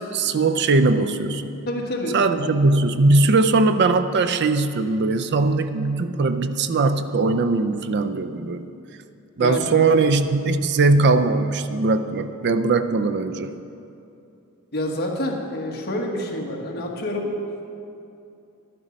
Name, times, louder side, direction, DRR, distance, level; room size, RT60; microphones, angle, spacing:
voice 1, 0.0-1.6 2.1-8.7 9.4-13.5, right 3 dB, 50° right, 11 dB, 0.4 m, -20 dB
voice 2, 1.7-2.6 9.4-9.7 14.7-17.3, left 1 dB, 45° left, -1 dB, 1.6 m, -28 dB
11.5 x 11.0 x 5.2 m, 2.7 s
head